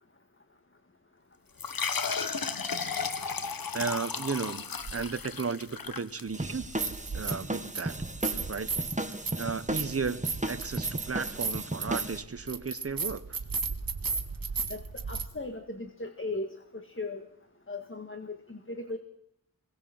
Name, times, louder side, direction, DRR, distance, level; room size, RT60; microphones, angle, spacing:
sound 1, 1.6-6.7, left 5 dB, 75° left, 1.3 m, -34 dB
voice 1, 3.7-4.6 4.9-6.6 7.1-8.0 8.5-8.8 9.4-10.2 10.5-13.4, right 5 dB, 40° right, 12 dB, 1.1 m, -34 dB
sound 2, 4.8-5.0 6.5-7.5 7.7-15.2, right 5 dB, 75° right, 1.7 m, -34 dB
sound 3, 6.3-12.2, right 1 dB, 20° right, 1.8 m, -35 dB
voice 2, 14.7-17.3 17.7-19.0, left 2 dB, 35° left, 7 dB, 1.9 m, -38 dB
21.5 x 18.0 x 7.8 m, 0.74 s
wide cardioid pair, 55°, 35 cm